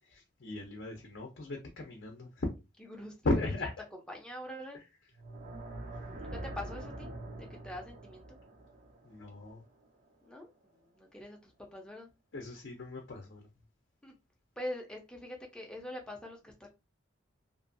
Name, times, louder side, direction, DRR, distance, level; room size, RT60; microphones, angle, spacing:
voice 1, 0.1-2.5 3.2-3.7 9.0-9.6 12.3-13.5, left 2 dB, 60° left, 0.6 m, -36 dB
voice 2, 2.9-3.4 4.1-4.8 6.2-7.1 7.4-8.4 10.2-12.1 14.0-14.1 14.6-16.7, left 1 dB, 5° left, 0.5 m, -44 dB
sound 1, 5.1-10.3, right 1 dB, 40° right, 0.6 m, -45 dB
2.6 x 2.4 x 2.5 m
head